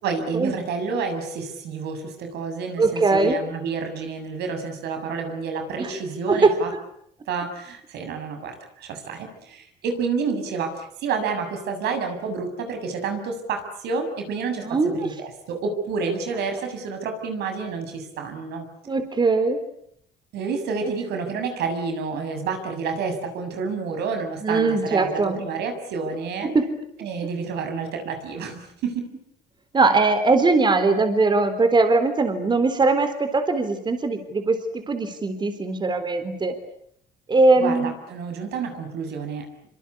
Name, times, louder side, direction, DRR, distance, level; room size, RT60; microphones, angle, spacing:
voice 1, 0.0-6.7 7.3-18.7 20.3-26.5 27.0-29.1 37.6-39.5, right 5 dB, 75° right, 6 dB, 7.1 m, -29 dB
voice 2, 2.8-3.4 5.8-5.9 6.3-6.5 10.3-10.4 14.6-14.9 18.9-19.6 24.4-25.3 26.4-26.7 29.7-36.5 37.3-37.9, right 3 dB, 25° right, 9 dB, 3.8 m, -20 dB
26.5 x 25.5 x 8.6 m, 0.71 s
cardioid pair, 110°, 17 cm